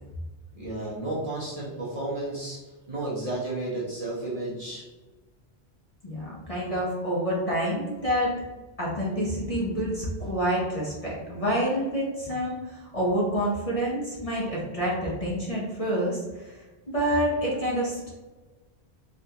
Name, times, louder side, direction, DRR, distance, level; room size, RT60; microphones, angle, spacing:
voice 1, 0.5-4.8, right 2 dB, 40° right, -6 dB, 0.6 m, -32 dB
voice 2, 6.0-8.3 8.8-16.6 16.9-18.1, equal, 40° left, -5 dB, 0.6 m, -28 dB
3.5 x 2.3 x 2.7 m, 1.2 s
omnidirectional pair, 1.1 m